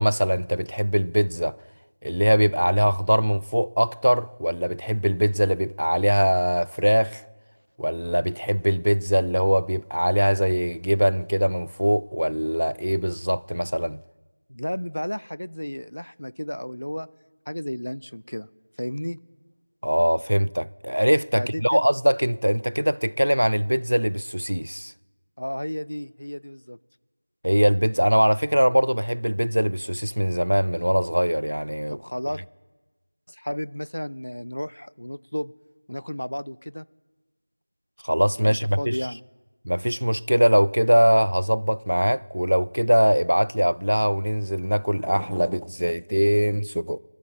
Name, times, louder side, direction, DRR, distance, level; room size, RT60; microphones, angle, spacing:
voice 1, 0.0-1.6 2.0-7.2 7.8-14.0 19.8-24.9 27.4-32.0 38.0-39.0 39.6-47.0, equal, 90° right, 0.3 m, -22 dB
voice 2, 14.5-17.1 17.5-18.5 18.8-19.2 21.4-21.8 25.4-26.8 31.9-32.4 33.3-35.5 35.9-36.9 38.4-39.2, equal, 80° left, 0.4 m, -32 dB
18.0 x 12.5 x 3.6 m
figure-of-eight pair, 175°, 0 cm